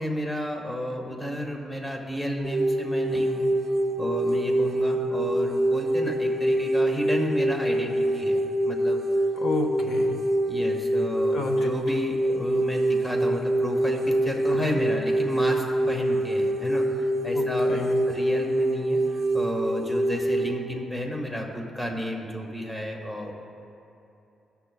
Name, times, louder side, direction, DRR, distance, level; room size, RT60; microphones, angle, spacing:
voice 1, 0.0-3.5 4.0-9.0 9.8-10.0 10.5-16.9 17.2-17.8 18.1-23.3, equal, 10° left, 1 dB, 0.9 m, -32 dB
sound 1, 2.4-20.5, right 1 dB, 45° right, 0.5 m, -25 dB
voice 2, 9.4-10.2 11.3-11.7 14.6-14.7 17.3-18.0, left 2 dB, 60° left, 4 dB, 0.6 m, -30 dB
16.5 x 6.8 x 2.2 m, 2.8 s
wide cardioid pair, 150°, 0 cm